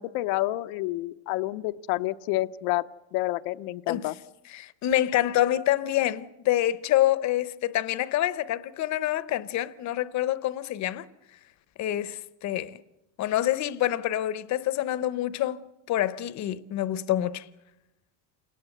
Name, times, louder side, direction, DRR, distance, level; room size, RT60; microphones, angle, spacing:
voice 1, 0.0-2.8 3.1-4.1, left 17 dB, 80° left, 0.8 m, -29 dB
voice 2, 4.5-11.1 11.8-12.8 13.2-15.6 15.9-17.5, left 13 dB, 40° left, 0.8 m, -26 dB
28.0 x 18.5 x 7.9 m
cardioid pair, 165°, 46 cm